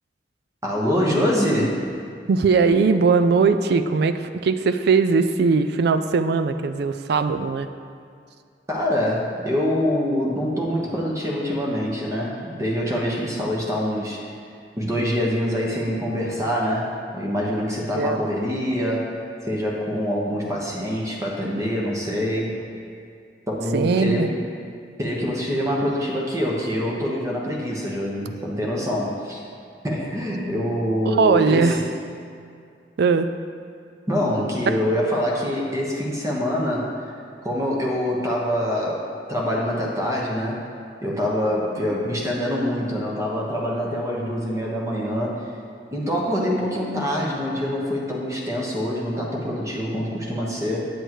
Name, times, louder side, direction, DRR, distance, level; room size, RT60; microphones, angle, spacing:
voice 1, 0.6-1.8 8.7-14.2 14.7-22.6 23.5-24.4 25.0-29.4 29.8-31.8 34.1-37.0 37.4-40.6 41.0-45.4 45.9-50.8, equal, 20° right, -3 dB, 1.2 m, -25 dB
voice 2, 2.3-7.7 17.9-18.2 23.7-24.3 31.1-31.8 33.0-33.3 34.7-34.8, right 4 dB, 65° right, 10 dB, 0.4 m, -19 dB
8.2 x 7.8 x 3.1 m, 2.3 s
head